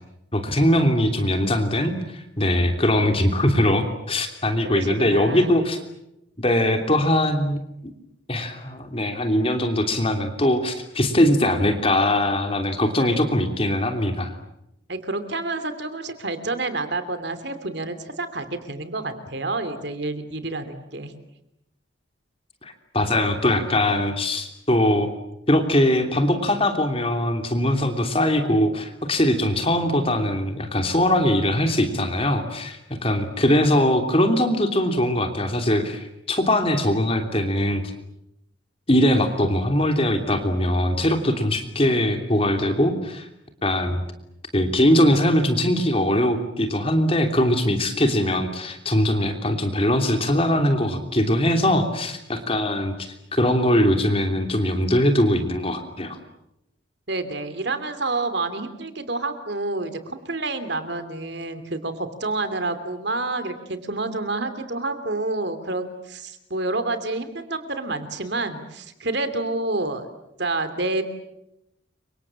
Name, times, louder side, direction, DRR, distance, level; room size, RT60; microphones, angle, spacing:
voice 1, 0.3-5.8 6.4-7.6 8.3-14.3 22.6-25.1 25.5-37.8 38.9-43.3 43.6-44.0 44.5-52.9 53.3-56.2, left 1 dB, 30° left, 5 dB, 3.1 m, -21 dB
voice 2, 4.6-5.6 13.0-13.2 14.9-21.1 57.1-70.1 70.4-71.0, right 2 dB, 55° right, 10 dB, 2.9 m, -28 dB
30.0 x 26.0 x 7.4 m, 0.83 s
head